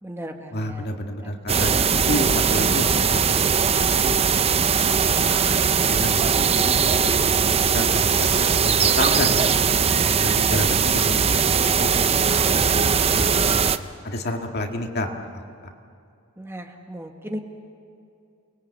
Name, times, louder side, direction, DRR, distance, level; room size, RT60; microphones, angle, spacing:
voice 1, 0.0-0.9 1.2-1.3 16.4-17.4, equal, 10° right, 3 dB, 1.6 m, -36 dB
voice 2, 0.5-1.8 2.1-3.5 3.8-5.3 5.9-9.5 10.2-12.7 13.1-15.4, left 1 dB, 45° left, 3 dB, 2.0 m, -31 dB
sound 1, 1.5-13.8, right 6 dB, 25° right, 0.6 m, -20 dB
29.5 x 21.0 x 8.4 m, 2.5 s
head